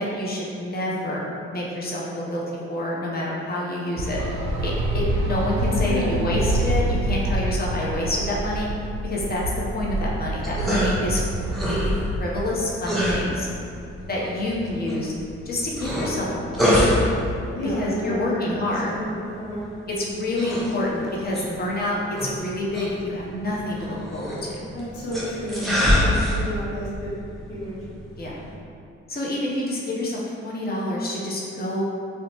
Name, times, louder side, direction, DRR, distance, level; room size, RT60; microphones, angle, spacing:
voice 1, 0.0-2.4 2.7-4.2 4.6-8.7 9.0-9.4 9.7-13.5 14.1-15.1 15.5-16.9 17.6-18.9 20.0-24.6 28.2-28.3 29.1-31.8, left 1 dB, 30° left, -4 dB, 0.7 m, -27 dB
sound 1, 4.0-12.1, right 1 dB, 60° right, 0.5 m, -26 dB
voice 2, 5.8-6.2 17.5-18.6 18.9-19.7 24.7-27.1 27.5-27.8, equal, 85° left, -7 dB, 0.8 m, -30 dB
sound 2, 9.9-28.5, equal, ahead, 0.8 m, -27 dB
2.6 x 2.1 x 2.9 m, 2.5 s
hypercardioid pair, 45°, 30 cm